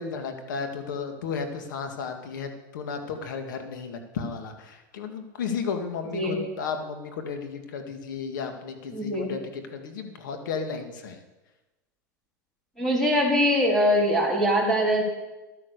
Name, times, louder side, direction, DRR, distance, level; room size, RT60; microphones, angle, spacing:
voice 1, 0.0-11.2, left 5 dB, 80° left, 6 dB, 2.1 m, -34 dB
voice 2, 8.9-9.3 12.8-15.0, equal, 5° left, -2 dB, 3.8 m, -22 dB
11.5 x 10.0 x 6.7 m, 1.1 s
supercardioid pair, 135°, 10 cm